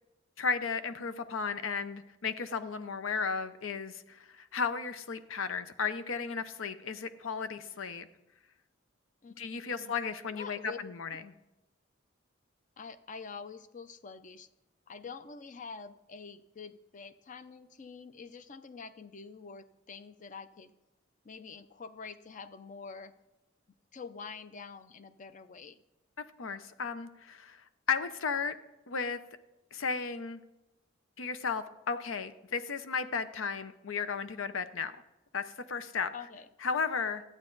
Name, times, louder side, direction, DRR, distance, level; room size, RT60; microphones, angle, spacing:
voice 1, 0.4-8.1 9.4-11.2 26.4-27.6 27.9-28.6 28.9-29.2 29.7-30.4 31.2-34.9 35.3-36.1 36.6-37.2, left 5 dB, 90° left, 12 dB, 0.7 m, -34 dB
voice 2, 9.2-10.0 10.3-10.9 12.8-14.5 14.9-20.7 21.2-23.1 23.9-25.8 36.1-36.5, left 5 dB, 40° left, 12 dB, 0.5 m, -46 dB
13.0 x 8.7 x 3.9 m, 0.94 s
head